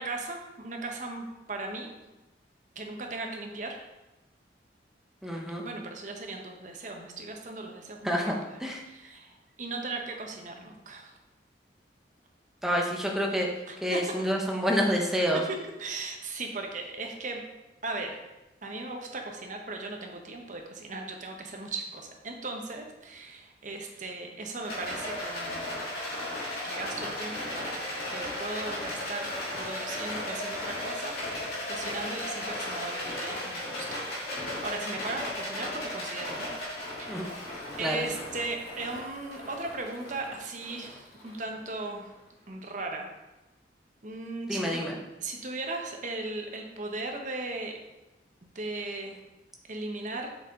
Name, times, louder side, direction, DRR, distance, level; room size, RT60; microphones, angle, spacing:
voice 1, 0.0-1.9 2.8-3.8 5.6-8.3 8.8-11.1 13.7-14.2 15.3-17.4 17.8-18.2 18.6-25.8 26.6-27.7 28.1-29.3 29.6-36.5 37.0-37.5 37.8-42.1 42.5-43.1 44.0-44.9 45.2-47.8 48.4-49.2 49.7-50.3, right 2 dB, 45° right, 2 dB, 1.0 m, -37 dB
voice 2, 5.2-5.6 8.0-8.3 8.6-8.8 12.6-13.5 13.8-15.4 37.1-37.2 37.8-38.0 44.5-45.0, equal, ahead, -1 dB, 0.9 m, -28 dB
Rattle, 24.6-42.0, left 1 dB, 55° left, 2.4 m, -36 dB
7.0 x 5.6 x 3.7 m, 1.0 s
head